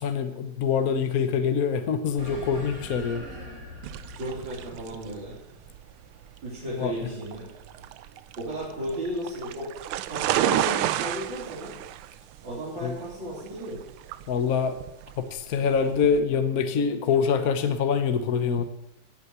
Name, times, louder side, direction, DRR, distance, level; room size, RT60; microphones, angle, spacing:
voice 1, 0.0-3.2 6.8-7.1 12.8-13.0 14.3-14.8 15.2-18.6, left 6 dB, 50° left, 9 dB, 1.2 m, -25 dB
sound 1, 2.2-6.9, equal, 40° right, 4.0 m, -43 dB
sound 2, 3.8-16.2, right 12 dB, 80° right, 1.5 m, -32 dB
voice 2, 4.1-5.4 6.4-7.8 8.4-11.7 12.4-13.8, equal, 55° right, -7 dB, 4.6 m, -35 dB
14.0 x 8.8 x 8.1 m, 0.82 s
omnidirectional pair, 2.4 m